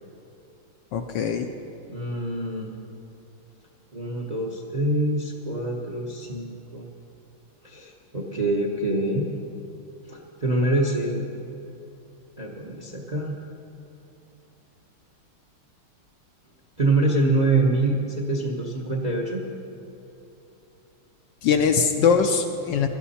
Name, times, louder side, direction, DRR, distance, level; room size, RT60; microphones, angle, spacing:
voice 1, 0.9-1.5 21.4-22.9, left 6 dB, 70° left, 6 dB, 1.2 m, -21 dB
voice 2, 1.9-2.7 3.9-6.8 7.6-9.3 10.1-11.2 12.4-13.4 16.8-19.4, right 2 dB, 35° right, 0 dB, 0.6 m, -25 dB
17.0 x 12.0 x 4.2 m, 2.9 s
omnidirectional pair, 2.4 m